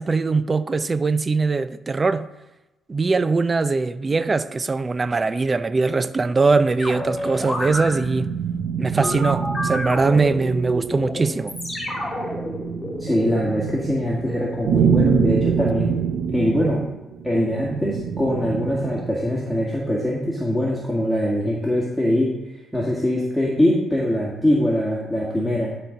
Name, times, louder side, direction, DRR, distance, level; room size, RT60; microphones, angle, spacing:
voice 1, 0.0-2.3 2.9-8.3 8.8-11.5, right 4 dB, 30° right, 0.5 m, -21 dB
sound 1, 6.6-19.2, right 6 dB, 80° right, 0.8 m, -26 dB
sound 2, 6.8-7.9 9.0-13.4, equal, 15° left, 2.0 m, -29 dB
voice 2, 13.0-16.0 16.3-16.8 17.2-22.3 22.7-25.7, equal, ahead, 2.0 m, -22 dB
11.0 x 4.3 x 5.2 m
cardioid pair, 90°, 0 cm